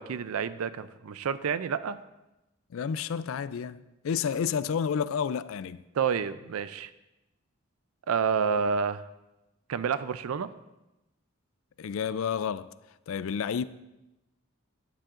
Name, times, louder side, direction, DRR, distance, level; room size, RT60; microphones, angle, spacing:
voice 1, 0.0-2.0 6.0-6.9 8.1-9.0 9.7-10.5, right 6 dB, 85° right, 0.4 m, -29 dB
voice 2, 2.7-5.8 11.8-12.7 13.1-13.6, left 7 dB, 75° left, 0.4 m, -30 dB
13.0 x 10.5 x 2.5 m
head